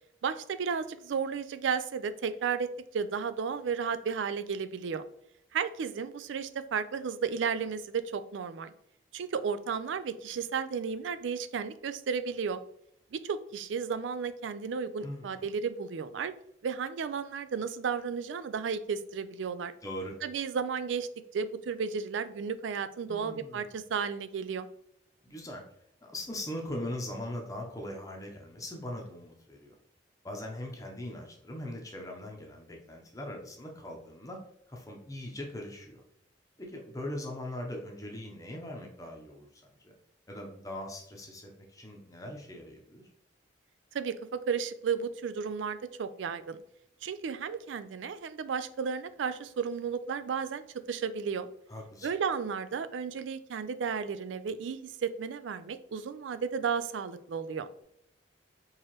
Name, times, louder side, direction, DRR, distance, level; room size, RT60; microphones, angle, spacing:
voice 1, 0.2-5.0 5.5-8.7 9.1-12.6 13.1-16.3 16.6-19.7 20.2-24.7 43.9-46.6 47.0-51.5 52.0-57.7, right 6 dB, 75° right, 12 dB, 0.4 m, -33 dB
voice 2, 15.0-15.5 19.8-20.1 23.1-23.8 25.2-25.6 26.0-29.8 30.2-34.4 34.7-36.0 36.6-39.9 40.3-43.1 51.7-52.1, left 1 dB, 20° left, 0 dB, 0.7 m, -40 dB
4.6 x 3.1 x 3.0 m, 0.74 s
head